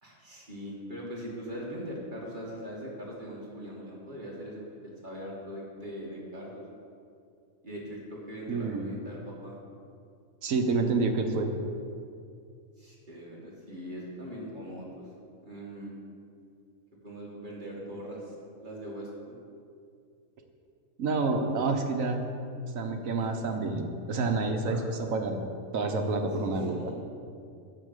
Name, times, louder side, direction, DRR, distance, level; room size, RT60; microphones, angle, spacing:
voice 1, 0.0-6.6 7.6-9.6 12.8-15.1 15.4-15.9 17.0-18.3 18.6-19.4 23.2-23.3 24.6-24.9 26.5-26.8, equal, 35° right, -4 dB, 2.2 m, -41 dB
voice 2, 8.5-9.0 10.4-11.5 21.0-22.2 22.7-25.4 25.7-26.8, right 3 dB, 75° right, 4 dB, 1.4 m, -28 dB
8.3 x 6.9 x 8.1 m, 2.4 s
omnidirectional pair, 1.4 m